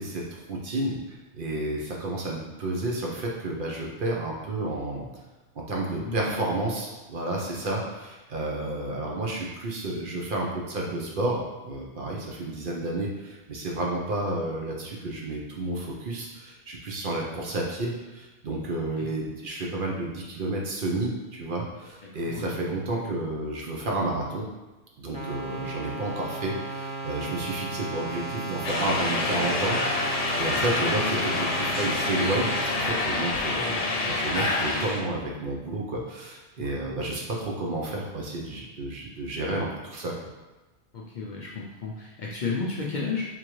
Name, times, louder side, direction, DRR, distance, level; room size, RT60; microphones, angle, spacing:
voice 1, 0.0-5.1 5.7-24.5 25.0-40.1, right 2 dB, 55° right, -2 dB, 0.7 m, -31 dB
voice 2, 6.0-6.4 7.4-7.6 22.3-22.4 25.5-25.6 36.6-36.7 40.9-43.2, left 4 dB, 55° left, -4 dB, 0.5 m, -32 dB
sound 1, 25.1-32.9, right 2 dB, 10° right, 0.4 m, -35 dB
sound 2, 28.6-35.0, left 2 dB, 80° left, 1.0 m, -27 dB
3.7 x 2.9 x 3.0 m, 1.1 s
omnidirectional pair, 1.2 m